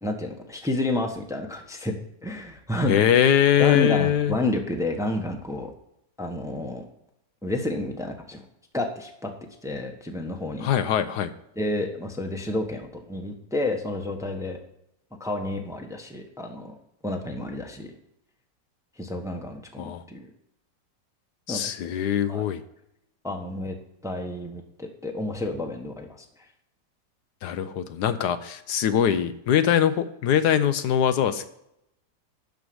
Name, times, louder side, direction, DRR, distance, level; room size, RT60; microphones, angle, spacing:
voice 1, 0.0-1.9 2.2-3.0 3.6-5.7 6.2-6.8 7.4-8.4 8.7-9.3 9.6-10.7 11.6-14.6 15.2-16.7 17.0-17.9 19.0-20.2 21.5-21.6 21.9-22.0 22.3-22.4 23.2-23.8 24.0-26.2, left 1 dB, ahead, 3 dB, 1.1 m, -30 dB
voice 2, 2.9-4.4 10.6-11.3 19.8-20.0 21.5-22.6 27.4-31.4, left 9 dB, 75° left, 11 dB, 1.3 m, -22 dB
12.0 x 4.9 x 7.8 m, 0.81 s
omnidirectional pair, 1.8 m